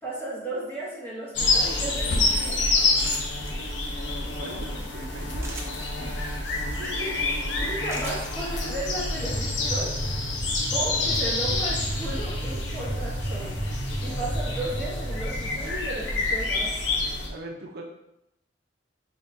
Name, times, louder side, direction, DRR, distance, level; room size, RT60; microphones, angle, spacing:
voice 1, 0.0-2.8 6.8-10.1 10.7-13.7 14.0-16.8, right 2 dB, 15° left, -8 dB, 1.5 m, -35 dB
sound 1, 1.3-17.3, left 2 dB, 85° left, 0.7 m, -28 dB
sound 2, 3.0-3.5 5.4-5.9 7.9-8.3, right 2 dB, 15° right, 0.6 m, -38 dB
voice 2, 4.4-5.6 6.0-6.2 17.3-17.8, right 1 dB, 60° right, 1 dB, 0.5 m, -41 dB
sound 3, 9.1-15.7, right 1 dB, 80° right, 1.0 m, -34 dB
3.9 x 2.9 x 3.4 m, 0.85 s
head